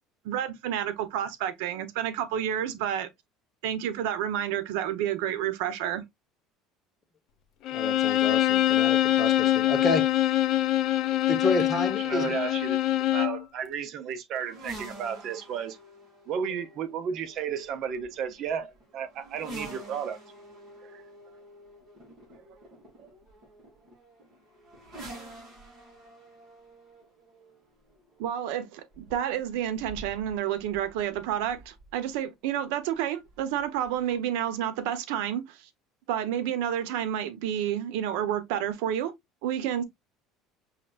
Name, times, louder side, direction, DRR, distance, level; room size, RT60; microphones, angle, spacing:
voice 1, 0.2-3.1 3.6-6.0 28.2-35.7 36.1-39.1 39.4-39.8, right 10 dB, 85° right, 0.8 m, -30 dB
Bowed string instrument, 7.7-13.4, left 14 dB, 50° left, 0.5 m, -24 dB
voice 2, 7.7-10.4 11.3-12.3, left 3 dB, 20° left, 1.0 m, -30 dB
voice 3, 12.0-15.8 16.3-20.2 20.8-21.0 22.3-22.6 23.0-23.2, right 7 dB, 45° right, 0.7 m, -33 dB
sound 1, 14.4-32.1 33.2-34.2, right 1 dB, 30° right, 2.9 m, -48 dB
5.8 x 3.2 x 2.4 m
cardioid pair, 165°, 0 cm